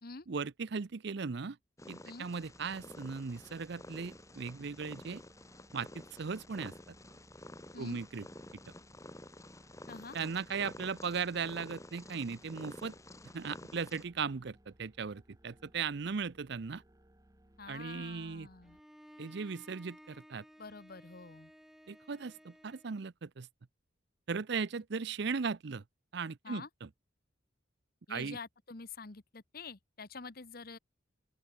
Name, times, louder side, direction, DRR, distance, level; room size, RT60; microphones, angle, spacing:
voice 1, 0.3-1.6 1.9-5.2 5.7-6.7 7.8-8.3 10.1-13.0 13.3-16.8 17.7-18.5 19.2-20.4 21.9-23.5 24.3-25.8 26.1-26.9 28.1-28.4, right 5 dB, 60° right, 0.6 m, -37 dB
Purr, 1.8-14.0, left 1 dB, 15° left, 2.0 m, -51 dB
sound 1, 2.4-18.8, right 1 dB, 20° right, 1.4 m, -64 dB
voice 2, 17.6-18.8 20.6-21.5 26.4-26.7 28.1-30.8, left 4 dB, 50° left, 1.2 m, -47 dB
Bowed string instrument, 18.6-23.0, equal, ahead, 4.0 m, -57 dB
open air
head